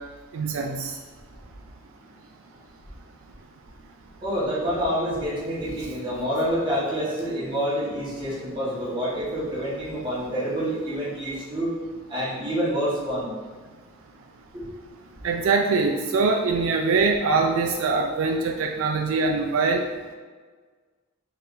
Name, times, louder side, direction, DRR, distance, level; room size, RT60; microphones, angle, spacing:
voice 1, 0.3-1.0 15.2-19.8, right 4 dB, 80° right, 3 dB, 0.3 m, -23 dB
voice 2, 4.2-11.7 12.1-13.3 14.5-14.6, equal, 25° right, -8 dB, 1.3 m, -27 dB
4.4 x 3.3 x 2.5 m, 1.5 s
head